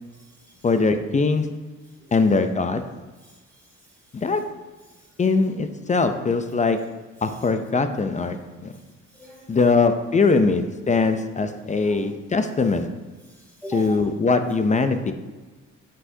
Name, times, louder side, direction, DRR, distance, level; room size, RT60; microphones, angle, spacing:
voice 1, 0.1-0.7 2.0-2.4 3.2-4.4 4.9-5.1 7.2-7.4 9.1-9.7 11.5-12.0 13.2-14.0, right 1 dB, 5° left, -6 dB, 2.2 m, -44 dB
voice 2, 0.6-1.5 2.1-2.8 4.1-4.4 5.2-6.8 7.2-8.4 9.5-12.9 13.7-15.1, left 4 dB, 25° left, 8 dB, 0.4 m, -21 dB
8.4 x 5.6 x 2.7 m, 1.2 s
cardioid pair, 90°, 30 cm